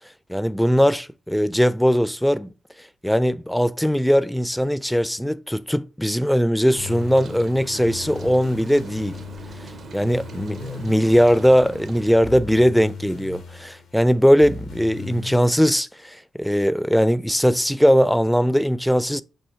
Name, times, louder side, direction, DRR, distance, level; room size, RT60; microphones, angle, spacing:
voice 1, 0.3-2.5 3.0-9.2 9.9-19.2, equal, 5° left, 0.3 m, -20 dB
Rain, 6.7-12.1, right 5 dB, 65° right, 0.5 m, -41 dB
sound 1, 6.8-15.5, left 5 dB, 85° left, 0.9 m, -38 dB
5.5 x 2.6 x 3.5 m
supercardioid pair, 45°, 0 cm